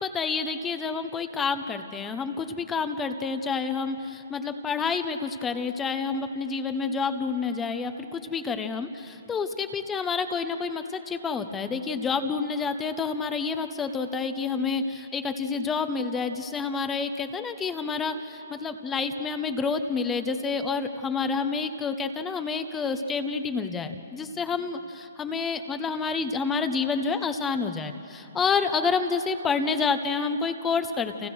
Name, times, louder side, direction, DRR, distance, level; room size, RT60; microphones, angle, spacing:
voice 1, 0.0-31.3, left 5 dB, 10° left, 8 dB, 0.9 m, -29 dB
30.0 x 28.5 x 6.3 m, 2.8 s
hypercardioid pair, 160°, 0 cm